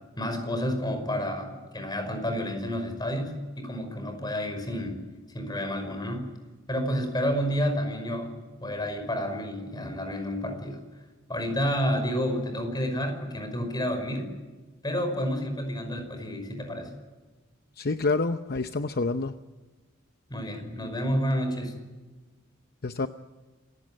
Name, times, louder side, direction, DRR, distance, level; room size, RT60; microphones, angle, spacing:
voice 1, 0.2-5.0 5.3-6.3 6.7-8.3 8.6-10.8 11.3-14.3 14.8-16.9 20.3-21.7, equal, 20° left, 7 dB, 5.5 m, -30 dB
voice 2, 17.8-19.3 22.8-23.1, left 3 dB, 50° left, 9 dB, 0.8 m, -27 dB
27.5 x 16.5 x 8.8 m, 1.3 s
head